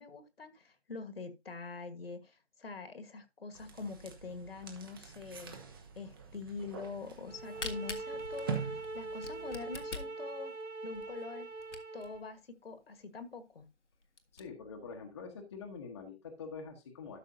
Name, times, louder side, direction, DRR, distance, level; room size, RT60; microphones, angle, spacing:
voice 1, 0.0-5.5 5.9-10.5 10.8-11.5 11.9-13.7, left 4 dB, 55° left, 9 dB, 1.5 m, -44 dB
sound 1, 3.5-10.1, right 6 dB, 20° right, 1.0 m, -45 dB
Camera, 7.2-12.2 12.7-12.8 13.0-13.1 13.6-13.7 14.0-14.4, left 3 dB, 90° left, 1.6 m, -44 dB
sound 2, 7.3-12.3, right 2 dB, 85° right, 1.1 m, -42 dB
voice 2, 14.3-17.2, left 5 dB, 25° left, 2 dB, 1.1 m, -45 dB
12.5 x 6.0 x 2.7 m, 0.25 s
figure-of-eight pair, 155°, 34 cm